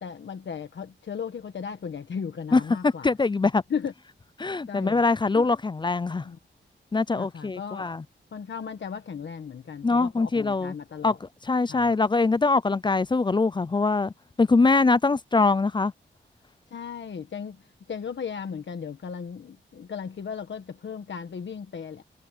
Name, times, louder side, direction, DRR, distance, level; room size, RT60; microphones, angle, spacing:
voice 1, 0.0-3.1 3.7-3.9 4.7-5.0 5.3-5.5 6.2-6.4 7.1-7.9 8.3-11.2 11.7-11.9 16.7-17.6 17.9-22.0, left 6 dB, 65° left, 1.3 m, -36 dB
voice 2, 2.5-3.6 4.4-6.3 6.9-8.0 9.8-10.7 11.0-14.1 14.4-15.9, left 3 dB, 25° left, 0.4 m, -23 dB
wide cardioid pair, 160°, 20 cm